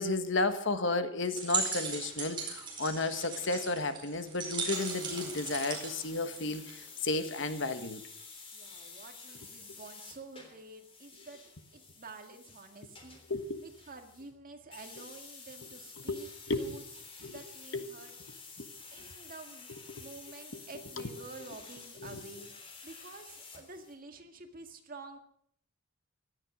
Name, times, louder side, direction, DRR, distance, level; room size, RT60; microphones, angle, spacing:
voice 1, 0.0-8.0 13.3-13.6 16.1-16.2 16.5-16.8 17.2-17.4 17.7-18.1 18.6-18.7 22.0-22.2, left 2 dB, 65° left, 9 dB, 1.4 m, -33 dB
sound 1, 1.2-6.9, right 4 dB, 25° right, 4.5 m, -37 dB
sound 2, 4.7-14.3 14.7-23.9, left 4 dB, 30° left, 3.4 m, -51 dB
voice 2, 8.5-11.4 11.7-13.2 13.6-16.3 16.5-16.8 17.2-18.1 18.9-19.7 20.0-22.5 22.8-25.2, right 3 dB, 45° right, 5 dB, 1.9 m, -49 dB
17.0 x 12.5 x 6.2 m, 0.66 s
head